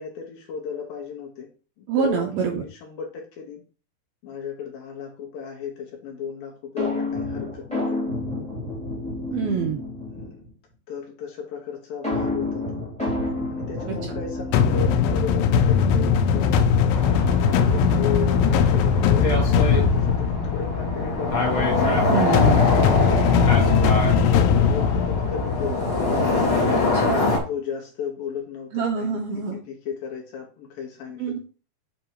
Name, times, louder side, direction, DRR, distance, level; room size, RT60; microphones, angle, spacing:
voice 1, 0.0-1.5 1.8-3.6 4.2-8.0 9.3-9.7 10.0-10.5 10.9-12.8 13.5-16.8 17.4-21.7 22.5-23.2 23.6-25.9 27.5-31.4, left 7 dB, 70° left, 0 dB, 2.2 m, -35 dB
voice 2, 1.9-2.6 9.3-9.8 22.1-22.7 26.7-27.4 28.7-29.6 31.2-31.4, right 6 dB, 80° right, 1 dB, 2.3 m, -26 dB
sound 1, 6.8-10.5 12.0-15.6, left 2 dB, 5° left, 1.3 m, -29 dB
sound 2, 14.5-26.4, left 6 dB, 90° left, 3.0 m, -20 dB
sound 3, 16.9-27.4, left 2 dB, 50° left, 1.6 m, -24 dB
8.0 x 3.9 x 4.5 m, 0.37 s
omnidirectional pair, 5.3 m